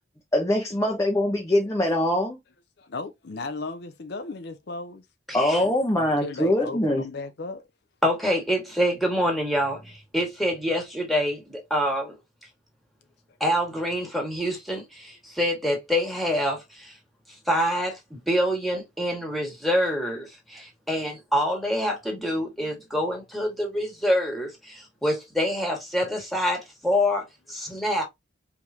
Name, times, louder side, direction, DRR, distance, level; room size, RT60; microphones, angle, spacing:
voice 1, 0.3-2.4 5.3-7.0, left 1 dB, 15° left, 0.8 m, -23 dB
voice 2, 2.8-5.0 5.6-7.7, left 3 dB, 55° left, 0.6 m, -36 dB
voice 3, 5.3-5.6 8.0-12.5 13.4-17.0 17.3-28.0, equal, ahead, 1.6 m, -26 dB
4.8 x 3.4 x 2.7 m
head